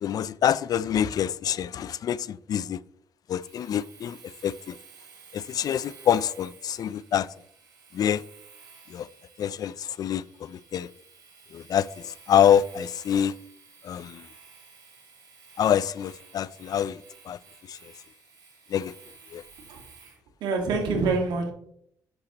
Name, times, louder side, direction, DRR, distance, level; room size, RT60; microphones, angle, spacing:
voice 1, 0.0-2.8 3.3-4.8 5.3-7.3 7.9-8.2 8.9-9.1 9.4-10.9 11.5-13.4 13.8-14.3 15.6-17.4 17.7-17.8 18.7-18.9 19.3-19.4, left 9 dB, 60° left, 0.3 m, -26 dB
Domestic sounds home sounds, 3.4-20.2, right 5 dB, 70° right, 3.0 m, -52 dB
voice 2, 20.4-21.5, right 3 dB, 85° right, 1.8 m, -25 dB
10.5 x 6.4 x 2.9 m
cardioid pair, 75°, 7 cm